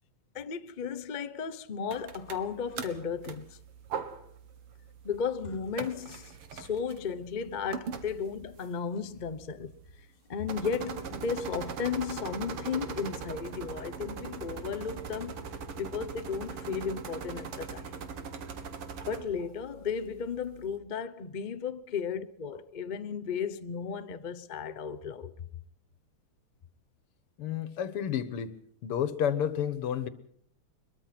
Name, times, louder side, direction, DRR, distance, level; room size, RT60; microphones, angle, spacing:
voice 1, 0.3-3.6 5.0-9.7 10.3-15.3 15.8-17.9 19.1-25.3, left 6 dB, 60° left, 0.4 m, -34 dB
sound 1, 1.9-20.8, right 6 dB, 85° right, 2.6 m, -41 dB
voice 2, 27.4-28.5 28.8-30.1, left 9 dB, 85° left, 2.2 m, -30 dB
23.0 x 22.0 x 6.0 m
omnidirectional pair, 2.4 m